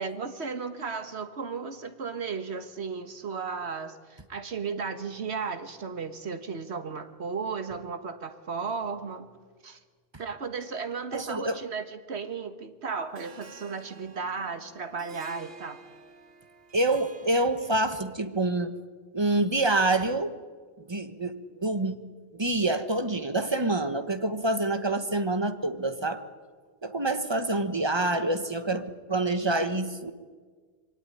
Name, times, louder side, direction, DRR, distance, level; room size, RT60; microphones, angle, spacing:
voice 1, 0.0-9.3 9.6-9.8 10.2-15.8, right 5 dB, 85° right, 10 dB, 1.7 m, -35 dB
voice 2, 11.1-11.6 16.7-18.7 19.1-20.4 20.8-22.0 22.3-26.2 26.8-30.1, right 2 dB, 25° right, 10 dB, 1.3 m, -27 dB
Harp, 13.1-18.2, right 4 dB, 65° right, 1.8 m, -51 dB
23.5 x 17.5 x 10.0 m, 1.5 s
omnidirectional pair, 1.1 m